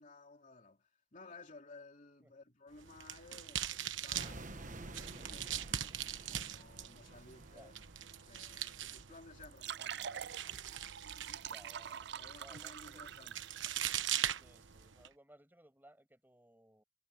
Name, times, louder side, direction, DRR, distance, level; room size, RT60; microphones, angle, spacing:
voice 1, 0.0-6.0 6.3-7.7 8.1-10.4 12.2-13.6, left 3 dB, 40° left, 3.2 m, -57 dB
sound 1, 2.7-15.1, right 10 dB, 80° right, 1.2 m, -42 dB
sound 2, 4.1-9.4, right 2 dB, 40° right, 1.3 m, -51 dB
sound 3, 9.4-14.3, right 9 dB, 60° right, 0.4 m, -45 dB
voice 2, 11.4-12.1 12.4-13.1 14.3-16.8, right 1 dB, 10° right, 7.7 m, -61 dB
head